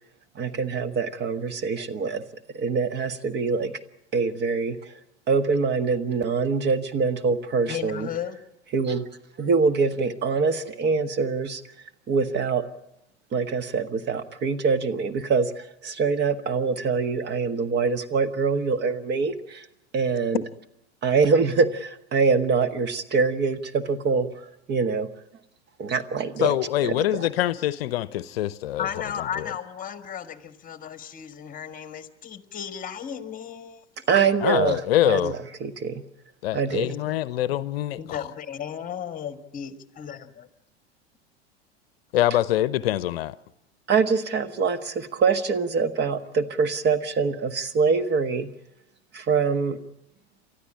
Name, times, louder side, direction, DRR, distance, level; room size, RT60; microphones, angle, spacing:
voice 1, 0.3-2.2 2.5-3.7 4.1-4.8 5.3-8.1 8.7-9.1 9.4-11.6 12.1-12.6 13.3-19.6 19.9-20.4 21.0-24.3 24.7-25.1 25.8-26.6 26.8-27.2 34.1-36.0 36.5-36.9 43.9-48.5 49.1-49.8, right 5 dB, 30° right, 1.4 m, -24 dB
voice 2, 7.7-8.4 28.8-33.8 36.8-37.0 38.0-40.2, left 8 dB, 25° left, 1.6 m, -34 dB
voice 3, 26.4-28.9 29.4-29.5 34.4-35.3 36.4-38.3 42.1-43.4, left 13 dB, 60° left, 0.8 m, -24 dB
30.0 x 13.0 x 8.7 m
hypercardioid pair, 90°, 34 cm